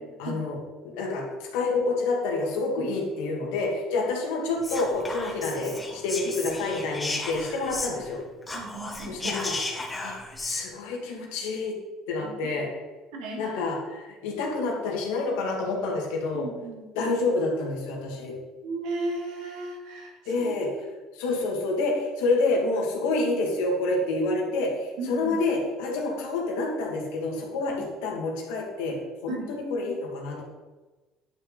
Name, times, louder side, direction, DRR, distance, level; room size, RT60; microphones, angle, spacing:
voice 1, 0.2-0.6 0.9-8.2 9.1-9.5 10.0-10.2 10.4-11.7 12.1-12.7 13.4-16.5 17.0-18.3 20.3-20.7 21.1-27.7 28.0-28.9 29.2-30.4, left 3 dB, 85° left, -1 dB, 2.5 m, -28 dB
Whispering, 4.6-8.2 8.4-10.7, left 2 dB, 20° left, 2.3 m, -34 dB
voice 2, 8.5-9.1 12.2-12.3 13.1-13.6 16.3-16.8 18.6-20.1 20.4-20.5 25.0-25.4 27.7-27.8 29.3-29.5, right 2 dB, 80° right, -2 dB, 3.2 m, -35 dB
10.5 x 6.5 x 4.1 m, 1.2 s
supercardioid pair, 75°, 0 cm